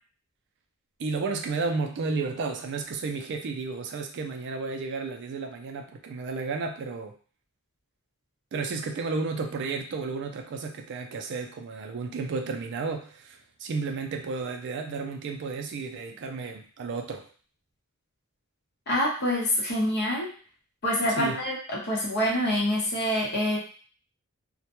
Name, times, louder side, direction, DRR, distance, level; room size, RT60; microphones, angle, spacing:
voice 1, 1.0-7.1 8.5-17.3 21.2-21.4, right 4 dB, 55° right, 3 dB, 0.4 m, -32 dB
voice 2, 18.9-20.3 20.8-23.6, left 1 dB, 50° left, -4 dB, 0.9 m, -26 dB
2.1 x 2.1 x 2.9 m, 0.42 s
head